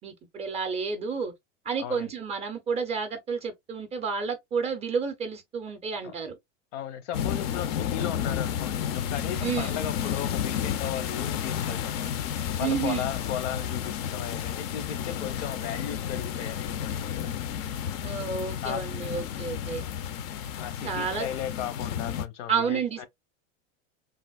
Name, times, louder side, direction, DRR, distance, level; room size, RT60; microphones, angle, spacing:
voice 1, 0.0-1.3 1.6-6.4 9.4-9.8 12.6-13.1 18.0-19.9 20.8-21.3 22.5-23.1, right 6 dB, 20° right, 0.4 m, -30 dB
voice 2, 1.8-2.1 6.0-6.1 6.7-12.1 12.6-17.3 18.6-18.8 20.6-23.1, left 10 dB, 75° left, 0.8 m, -36 dB
sound 1, 7.1-22.3, left 9 dB, 40° left, 0.4 m, -32 dB
3.3 x 2.5 x 2.2 m
supercardioid pair, 135°, 36 cm